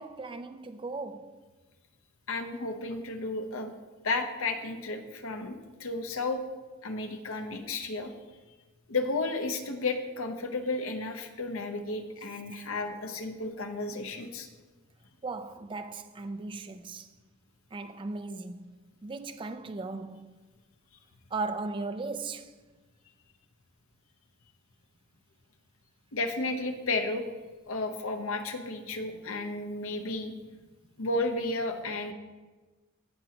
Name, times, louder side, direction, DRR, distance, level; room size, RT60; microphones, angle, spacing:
voice 1, 0.0-1.4 15.2-17.1 17.7-18.8 19.0-20.4 21.3-22.5, right 3 dB, 20° right, 0.3 m, -37 dB
voice 2, 2.3-3.7 4.0-6.4 6.8-8.1 8.9-14.5 26.1-27.3 27.7-30.3 31.0-32.1, left 3 dB, 65° left, 0.9 m, -33 dB
15.0 x 6.1 x 2.9 m
head